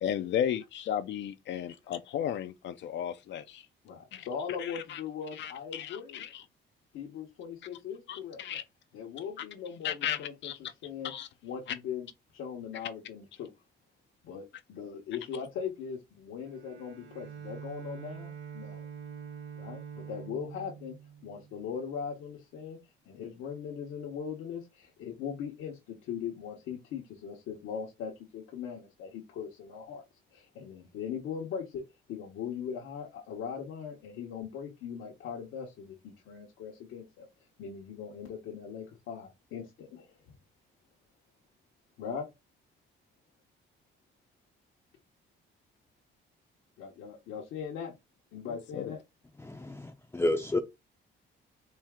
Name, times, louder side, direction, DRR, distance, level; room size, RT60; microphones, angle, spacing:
voice 1, 0.0-3.7 4.1-4.3 4.6-5.0 5.3-6.4 8.1-8.6 9.8-10.6 11.0-11.3 11.7-11.8 48.5-49.0, left 10 dB, 65° left, 0.4 m, -34 dB
voice 2, 3.8-6.2 6.9-8.4 8.9-10.5 10.8-11.1 11.4-12.1 12.3-13.5 14.2-18.8 19.6-21.0 21.2-22.8 23.1-30.0 30.3-31.8 32.1-37.3 37.6-40.1 42.0-42.3 46.8-47.9 48.3-49.0, left 7 dB, 90° left, 1.0 m, -40 dB
Bowed string instrument, 16.4-22.0, right 7 dB, 75° right, 0.8 m, -45 dB
voice 3, 49.4-50.6, left 1 dB, 10° left, 0.5 m, -30 dB
4.3 x 2.4 x 3.5 m
cardioid pair, 90°, 20 cm